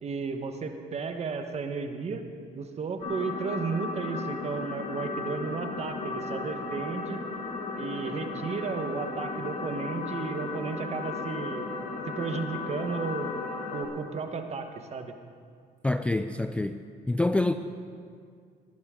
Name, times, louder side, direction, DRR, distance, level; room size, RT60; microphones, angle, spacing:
voice 1, 0.0-2.2 2.5-7.2 7.8-11.7 12.1-13.3 13.7-15.1, right 4 dB, 40° right, 6 dB, 1.2 m, -33 dB
sound 1, 3.0-13.8, left 3 dB, 45° left, 2.0 m, -35 dB
voice 2, 15.8-16.8 17.1-17.5, left 2 dB, 5° left, 8 dB, 0.3 m, -26 dB
19.0 x 12.0 x 3.7 m, 2.2 s
cardioid pair, 110°, 17 cm